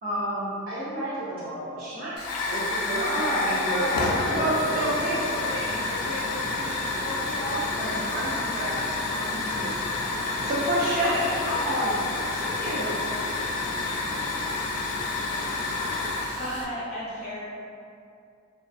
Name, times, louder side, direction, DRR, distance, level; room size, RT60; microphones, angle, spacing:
voice 1, 0.0-0.6 1.8-2.1 2.9-10.1 10.4-13.0, right 1 dB, 45° right, -9 dB, 0.4 m, -30 dB
voice 2, 0.7-1.8 2.1-3.9 4.3-5.5, right 1 dB, 70° right, -10 dB, 1.0 m, -33 dB
Hiss / Fire, 2.2-16.7, left 3 dB, 90° left, 0.3 m, -29 dB
voice 3, 16.2-17.4, equal, 30° left, -7 dB, 0.5 m, -34 dB
2.3 x 2.2 x 2.5 m, 2.4 s
head